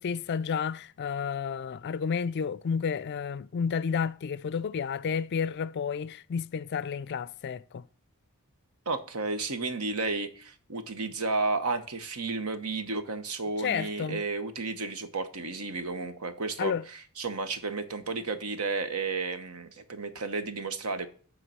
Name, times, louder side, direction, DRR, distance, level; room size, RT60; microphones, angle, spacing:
voice 1, 0.0-7.8 13.6-14.2 16.6-16.8, left 6 dB, 50° left, 0.3 m, -31 dB
voice 2, 8.9-21.1, right 3 dB, 75° right, 1.1 m, -32 dB
8.9 x 3.8 x 6.7 m
head